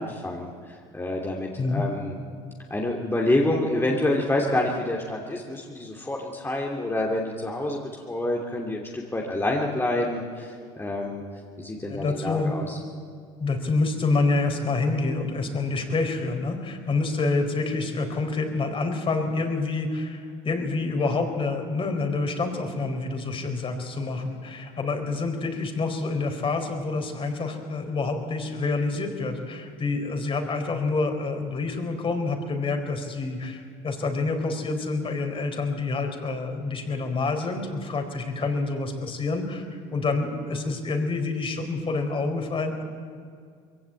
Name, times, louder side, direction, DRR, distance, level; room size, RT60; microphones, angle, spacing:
voice 1, 0.0-2.2 2.7-11.2 11.6-12.8, left 1 dB, 15° left, -1 dB, 2.8 m, -27 dB
voice 2, 11.9-12.5 13.4-42.8, left 3 dB, 35° left, 5 dB, 4.4 m, -27 dB
22.0 x 16.0 x 9.0 m, 2.2 s
hypercardioid pair, 75°, 15 cm